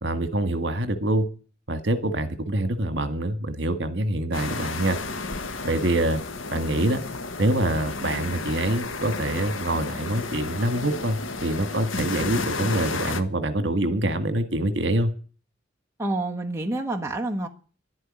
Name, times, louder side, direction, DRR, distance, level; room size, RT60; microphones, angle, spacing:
voice 1, 0.0-1.3 1.7-5.0 5.6-6.2 6.5-7.0 7.4-15.1, right 1 dB, 65° right, 10 dB, 1.7 m, -25 dB
sound 1, 4.3-13.2, left 3 dB, 85° left, 1.3 m, -32 dB
voice 2, 16.0-17.5, right 2 dB, 15° right, 1 dB, 1.2 m, -28 dB
11.5 x 9.6 x 9.8 m, 0.40 s
head